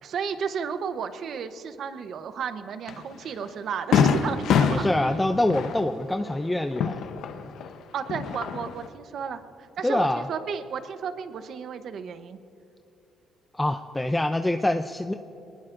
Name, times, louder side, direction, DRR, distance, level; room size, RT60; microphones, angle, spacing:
voice 1, 0.0-4.8 7.9-9.4 9.8-12.4, right 7 dB, 60° right, 10 dB, 0.8 m, -33 dB
Fireworks, 2.9-3.0 3.4-3.5 3.9-7.7 8.0-8.9, left 6 dB, 75° left, 0.8 m, -25 dB
voice 2, 4.7-7.0 9.8-10.3 13.5-15.1, left 1 dB, 10° left, 8 dB, 0.5 m, -25 dB
23.0 x 19.5 x 2.5 m, 2.9 s
cardioid pair, 105°, 0 cm